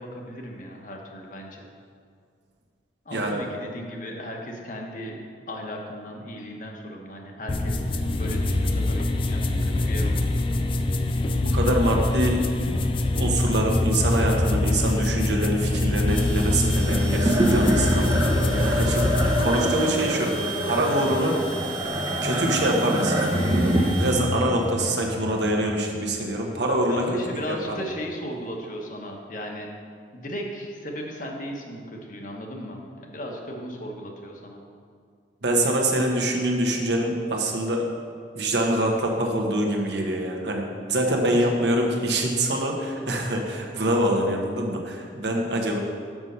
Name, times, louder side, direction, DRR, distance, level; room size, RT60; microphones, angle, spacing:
voice 1, 0.0-1.6 3.0-10.3 26.9-29.7 30.1-34.6 41.3-41.5, equal, 45° left, 1 dB, 1.0 m, -36 dB
sound 1, 7.5-19.5, left 2 dB, 30° left, 0.4 m, -24 dB
voice 2, 11.4-12.4 13.1-20.3 20.6-21.4 22.2-23.2 24.0-27.1 27.5-27.9 35.4-37.9 38.3-45.8, right 1 dB, 75° right, 1 dB, 1.1 m, -25 dB
sound 2, 16.1-25.3, right 3 dB, 5° left, 0.9 m, -38 dB
sound 3, 16.7-27.2, right 1 dB, 25° right, 0.6 m, -26 dB
6.5 x 6.1 x 5.5 m, 2.2 s
head